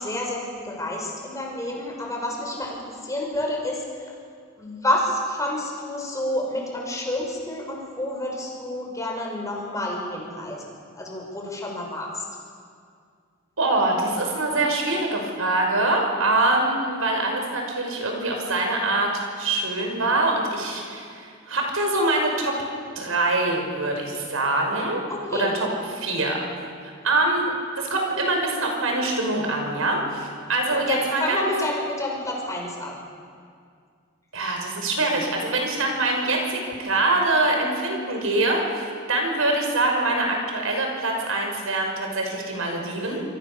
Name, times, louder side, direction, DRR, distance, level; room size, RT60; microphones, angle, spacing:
voice 1, 0.0-2.8 3.0-3.8 4.6-12.2 25.1-25.5 30.7-33.0, left 1 dB, 15° left, -1 dB, 6.1 m, -29 dB
voice 2, 13.6-22.6 23.0-25.0 25.3-26.4 27.0-31.4 34.3-43.2, right 2 dB, 85° right, 1 dB, 5.8 m, -24 dB
27.5 x 25.0 x 7.0 m, 2.2 s
head